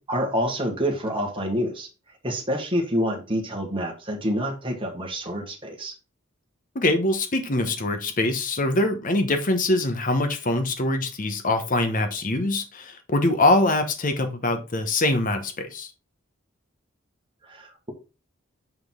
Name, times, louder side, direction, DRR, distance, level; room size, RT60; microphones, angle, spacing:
voice 1, 0.0-1.9 2.2-5.9 17.4-17.9, equal, 25° right, 1.4 m, -27 dB
voice 2, 6.7-15.9, left 2 dB, 40° left, 1.0 m, -23 dB
6.0 x 5.2 x 3.7 m
head